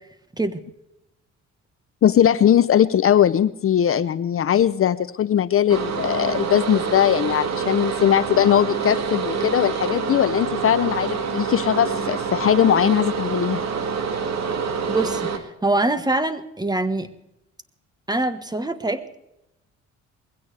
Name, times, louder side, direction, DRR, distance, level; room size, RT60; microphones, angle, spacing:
voice 1, 2.0-13.6, left 10 dB, 45° left, 15 dB, 0.6 m, -19 dB
sound 1, 5.7-15.4, right 5 dB, 60° right, 2.1 m, -26 dB
voice 2, 14.9-17.1 18.1-19.2, right 2 dB, 15° right, 11 dB, 1.3 m, -24 dB
21.0 x 16.0 x 3.3 m, 0.86 s
cardioid pair, 90°, 30 cm